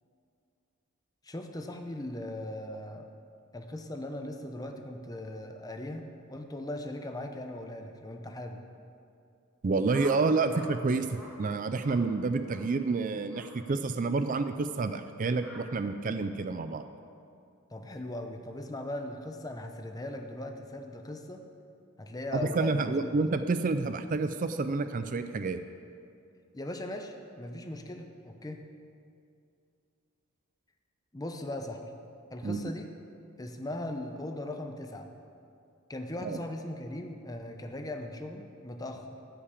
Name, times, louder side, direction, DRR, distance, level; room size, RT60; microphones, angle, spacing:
voice 1, 1.2-3.1 3.5-8.6 17.7-21.4 22.0-23.2 26.5-28.6 31.1-31.9 32.3-32.9 33.4-35.1 35.9-39.1, left 1 dB, 15° left, 5 dB, 0.8 m, -39 dB
voice 2, 9.6-11.1 11.4-16.8 22.3-25.6 32.4-32.6 36.2-36.4, right 3 dB, 40° right, 10 dB, 0.4 m, -29 dB
sound 1, 9.9-10.7 11.0-11.3 11.8-12.0 12.4-12.7 13.3-13.5 14.3-14.5 15.4-15.6, equal, ahead, 2.1 m, -48 dB
13.5 x 5.8 x 8.3 m, 2.5 s
head